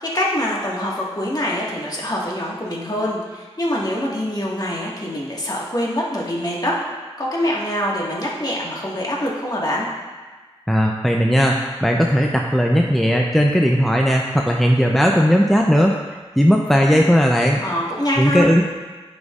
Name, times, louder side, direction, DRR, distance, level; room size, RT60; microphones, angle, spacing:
voice 1, 0.0-6.8 7.2-9.9 17.6-18.5, left 1 dB, 35° left, -4 dB, 1.6 m, -24 dB
voice 2, 10.7-11.6 11.8-15.9 16.4-17.6 18.2-18.6, equal, ahead, 0 dB, 0.5 m, -16 dB
9.4 x 5.2 x 2.4 m, 1.4 s
cardioid pair, 40°, 11 cm